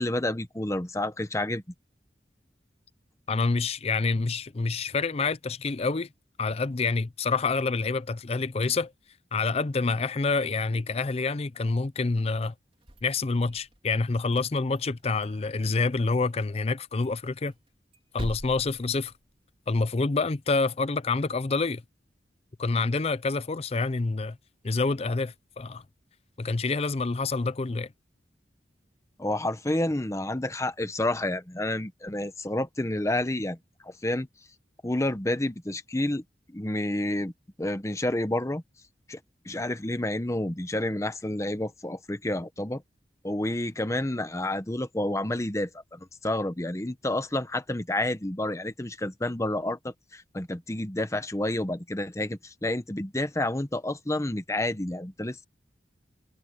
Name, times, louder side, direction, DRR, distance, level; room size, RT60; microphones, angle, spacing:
voice 1, 0.0-1.6 29.2-33.6 33.8-34.3 34.8-36.2 36.5-37.3 37.6-38.6 39.1-39.2 39.4-42.8 43.2-55.4, left 1 dB, 15° left, 1.0 m, -29 dB
voice 2, 3.3-6.1 6.4-8.9 9.3-12.5 13.0-17.5 18.1-19.1 19.7-21.8 22.6-24.4 24.6-25.8 26.4-27.9, left 3 dB, 35° left, 0.5 m, -27 dB
sound 1, 12.7-13.9 14.3-15.4 15.7-15.8 16.1-16.3 16.6-16.7 17.0-19.6, equal, 30° right, 4.0 m, -43 dB
head